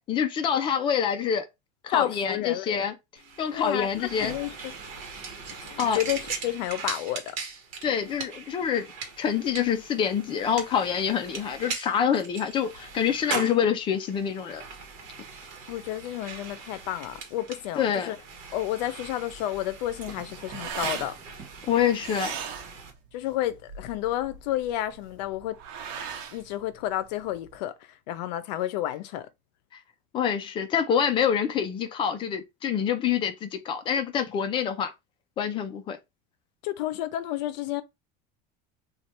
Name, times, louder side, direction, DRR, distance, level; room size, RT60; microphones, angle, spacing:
voice 1, 0.0-1.4 1.8-2.9 3.4-4.3 5.8-6.0 7.8-8.9 9.2-14.6 17.8-18.1 21.7-22.3 30.1-34.9 35.4-36.0, left 8 dB, 25° left, 0.5 m, -26 dB
voice 2, 1.9-2.8 3.5-4.7 5.6-7.3 15.7-18.2 18.5-21.1 23.1-25.6 26.3-27.7 28.1-29.3 36.6-37.8, left 13 dB, 85° left, 0.6 m, -31 dB
sound 1, 3.2-22.9, right 5 dB, 40° right, 1.1 m, -40 dB
sound 2, 19.7-27.6, right 7 dB, 65° right, 0.9 m, -39 dB
3.2 x 2.4 x 4.3 m
cardioid pair, 170°, 21 cm